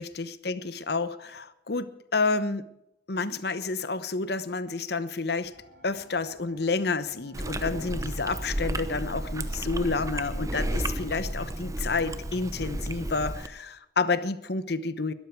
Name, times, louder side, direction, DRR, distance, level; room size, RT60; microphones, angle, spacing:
voice 1, 0.0-2.6 3.1-5.5 5.8-15.1, left 3 dB, 60° left, 13 dB, 1.0 m, -30 dB
sound 1, 5.4-10.5, left 1 dB, 65° right, 4.4 m, -56 dB
Chewing mastication, 7.3-13.5, right 1 dB, 20° right, 0.8 m, -32 dB
21.5 x 13.0 x 4.7 m, 0.86 s
head